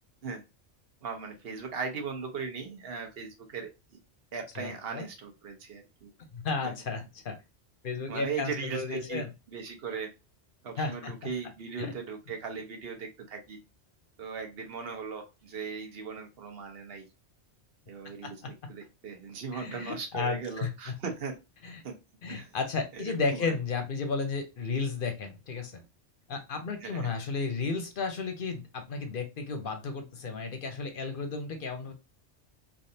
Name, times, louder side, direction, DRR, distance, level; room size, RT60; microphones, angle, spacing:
voice 1, 1.0-3.7 4.3-6.1 6.6-6.7 8.1-10.1 10.6-13.6 14.2-17.0 17.9-18.4 18.7-21.3 21.8-22.0 22.3-22.5 22.9-23.5 26.8-27.1, right 5 dB, 60° right, 4 dB, 1.0 m, -38 dB
voice 2, 4.6-5.1 6.3-7.4 7.8-9.3 10.8-11.1 11.8-11.9 18.2-18.5 19.5-20.7 21.6-21.8 22.2-25.8 26.3-31.9, left 4 dB, 55° left, 6 dB, 0.8 m, -33 dB
3.3 x 2.5 x 2.7 m, 0.25 s
omnidirectional pair, 1.2 m